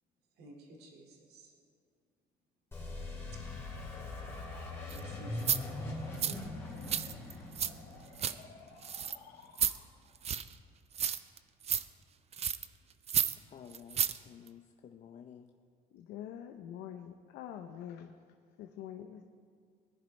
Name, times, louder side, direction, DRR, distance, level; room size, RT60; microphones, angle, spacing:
voice 1, 0.4-1.5 4.8-5.9 6.3-6.4, right 1 dB, 70° right, 2.4 m, -53 dB
sound 1, 2.7-9.3, left 2 dB, 15° left, 3.3 m, -42 dB
sound 2, 3.7-10.2, left 5 dB, 70° left, 1.3 m, -56 dB
sound 3, 4.9-5.0 5.4-5.6 6.2-6.4 6.8-7.7 8.0-8.3 8.8-9.2 9.6-9.8 10.2-10.5 10.9-11.4 11.6-11.8 12.3-12.7 13.1-13.4 13.7-14.2 14.5-14.6, right 8 dB, 40° right, 0.5 m, -31 dB
voice 2, 13.5-15.5, left 8 dB, 45° left, 0.6 m, -52 dB
voice 3, 15.9-18.1 18.6-19.2, left 10 dB, 85° left, 0.7 m, -45 dB
20.0 x 10.5 x 3.3 m
cardioid pair, 110°, 17 cm